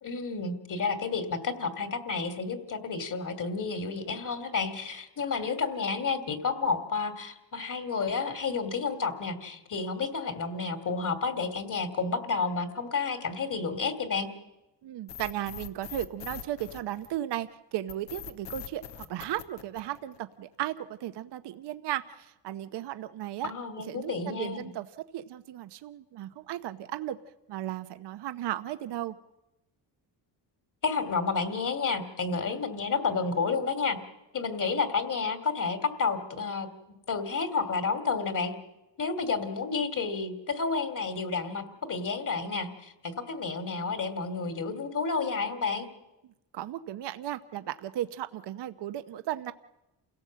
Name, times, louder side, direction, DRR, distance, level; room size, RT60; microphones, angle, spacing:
voice 1, 0.0-14.3 23.4-24.7 30.8-34.0 34.3-36.7 37.1-38.5 39.0-45.9, left 4 dB, 45° left, 9 dB, 2.8 m, -30 dB
voice 2, 14.8-23.5 23.8-27.2 27.5-29.2 46.2-49.5, right 13 dB, 70° right, 11 dB, 0.9 m, -35 dB
sound 1, 15.1-17.4 17.9-20.3, left 9 dB, 75° left, 1.4 m, -42 dB
28.0 x 17.0 x 7.5 m, 0.96 s
cardioid pair, 85°, 42 cm